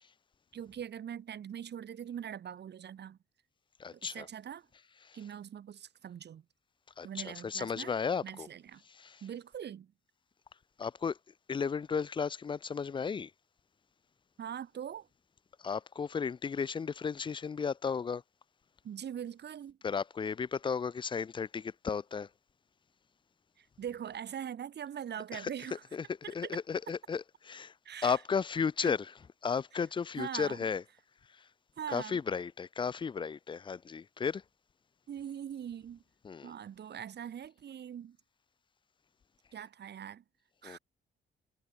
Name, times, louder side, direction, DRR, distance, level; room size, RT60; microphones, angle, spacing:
voice 1, 0.5-3.2 3.9-4.7 5.1-6.4 7.0-7.9 8.2-8.8 9.2-9.9 14.4-15.1 18.8-19.8 23.6-25.8 26.2-26.6 27.8-28.2 28.8-29.0 30.2-30.7 31.8-32.2 35.1-36.0 36.4-38.2 39.5-40.2 40.6-40.8, right 9 dB, 60° right, 2.8 m, -42 dB
voice 2, 3.8-4.3 5.0-5.2 7.0-8.5 8.9-9.2 10.8-11.2 11.5-13.3 15.6-18.2 19.8-22.3 25.3-25.5 25.9-27.7 28.0-29.1 29.4-30.8 31.9-34.4 36.2-36.5 40.6-40.8, left 6 dB, 25° left, 0.4 m, -34 dB
cardioid pair, 90°, 20 cm